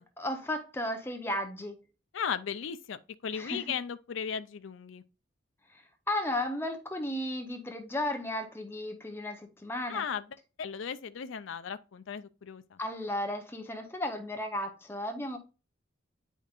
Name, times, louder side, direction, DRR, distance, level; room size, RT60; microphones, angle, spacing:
voice 1, 0.0-1.8 3.3-3.6 5.7-10.0 12.8-15.4, left 1 dB, 10° left, 0.7 m, -34 dB
voice 2, 2.1-5.0 9.9-10.2 10.6-12.8, left 7 dB, 75° left, 0.5 m, -36 dB
9.2 x 5.1 x 2.4 m
head